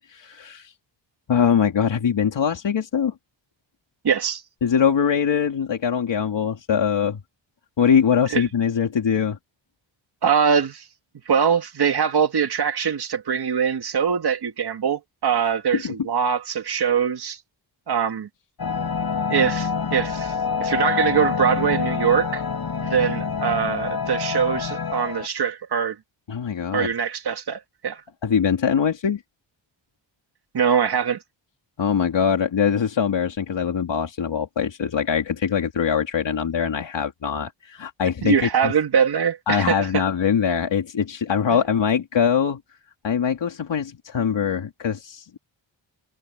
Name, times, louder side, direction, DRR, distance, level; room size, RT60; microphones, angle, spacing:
voice 1, 0.1-0.7 1.3-3.1 4.6-7.2 7.8-9.4 15.7-15.9 26.3-26.9 28.2-29.2 31.8-38.7 39.5-42.6 43.0-45.4, left 7 dB, 70° left, 3.1 m, -22 dB
voice 2, 4.0-4.4 8.3-8.4 10.2-10.8 11.3-17.4 17.9-18.3 19.3-20.3 20.6-22.4 22.8-26.0 26.7-28.0 30.5-31.2 38.2-40.0 41.5-41.6, right 7 dB, 55° right, 2.0 m, -22 dB
sound 1, 18.6-25.3, left 6 dB, 55° left, 6.0 m, -26 dB
wide cardioid pair, 140°, 46 cm